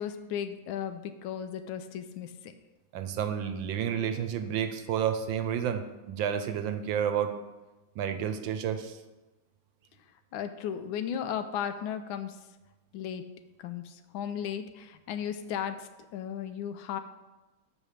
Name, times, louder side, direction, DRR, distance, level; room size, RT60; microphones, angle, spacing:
voice 1, 0.0-2.5 10.3-12.4 12.9-13.3 13.6-17.0, left 8 dB, 85° left, 9 dB, 1.4 m, -35 dB
voice 2, 2.9-5.8 6.1-7.4 8.0-8.9, right 8 dB, 75° right, 9 dB, 1.4 m, -30 dB
7.1 x 5.1 x 6.4 m, 1.1 s
omnidirectional pair, 2.1 m